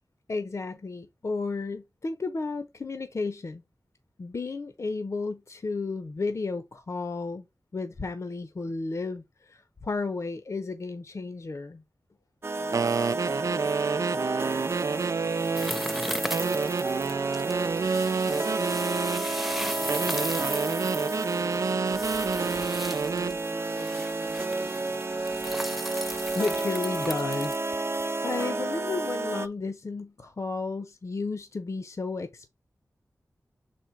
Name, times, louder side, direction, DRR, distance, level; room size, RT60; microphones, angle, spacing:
voice 1, 0.3-3.6 4.2-7.5 7.7-11.8 26.3-27.6 28.2-32.5, left 3 dB, 55° left, 0.9 m, -33 dB
sound 1, 12.4-29.5, right 2 dB, 40° right, 0.7 m, -31 dB
voice 2, 12.5-17.3 18.2-22.1 22.8-25.9, left 2 dB, 90° left, 2.2 m, -50 dB
sound 2, 12.7-15.8 16.3-19.3 19.9-23.4, right 5 dB, 65° right, 0.3 m, -29 dB
sound 3, 15.5-27.6, equal, 5° right, 0.8 m, -37 dB
6.3 x 4.4 x 4.6 m
wide cardioid pair, 65°, 6 cm